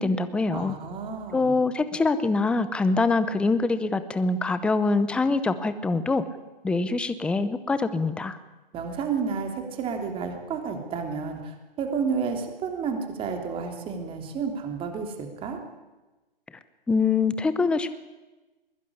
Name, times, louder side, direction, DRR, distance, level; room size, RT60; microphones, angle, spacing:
voice 1, 0.0-0.8 1.3-6.2 6.6-8.4 16.9-17.9, left 3 dB, 5° left, 12 dB, 0.7 m, -24 dB
voice 2, 0.5-1.6 8.7-15.6, right 5 dB, 20° right, 4 dB, 3.3 m, -31 dB
21.0 x 20.5 x 10.0 m, 1.2 s
hypercardioid pair, 140°, 29 cm